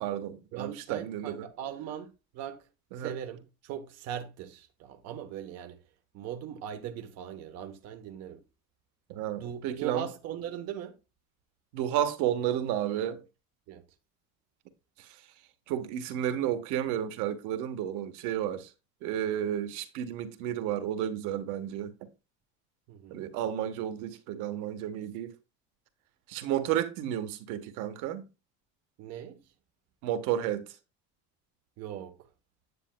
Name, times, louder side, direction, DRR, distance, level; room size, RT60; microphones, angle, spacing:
voice 1, 0.0-1.4 2.9-3.1 9.1-10.0 11.7-13.2 15.0-15.1 15.7-18.7 19.0-21.9 23.1-25.3 26.3-28.2 30.0-30.6, right 11 dB, 70° right, 1.2 m, -32 dB
voice 2, 0.5-2.7 2.9-5.8 6.1-8.4 9.4-11.0 13.7-13.8 22.9-23.2 29.0-29.5 31.8-32.3, right 9 dB, 50° right, 1.0 m, -40 dB
9.8 x 8.2 x 2.2 m
cardioid pair, 175°, 32 cm